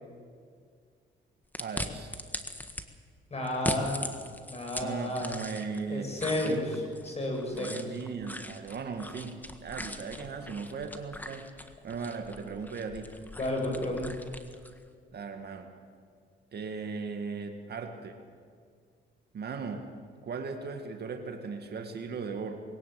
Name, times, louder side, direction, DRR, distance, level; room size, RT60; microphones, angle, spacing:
sound 1, 1.5-2.8 3.5-5.8 6.2-14.8, left 1 dB, 10° left, 1.6 m, -40 dB
voice 1, 1.6-2.1 4.8-6.1 6.4-6.7 7.5-11.4 11.8-13.1 15.1-15.7 16.5-18.2 19.3-19.9 20.2-22.6, right 5 dB, 55° right, 5 dB, 2.1 m, -37 dB
voice 2, 3.3-4.0 4.5-5.3 5.9-6.6 7.0-7.8 13.4-14.1, left 1 dB, 30° left, 1 dB, 7.5 m, -31 dB
21.5 x 18.0 x 7.8 m, 2.1 s
cardioid pair, 90°, 20 cm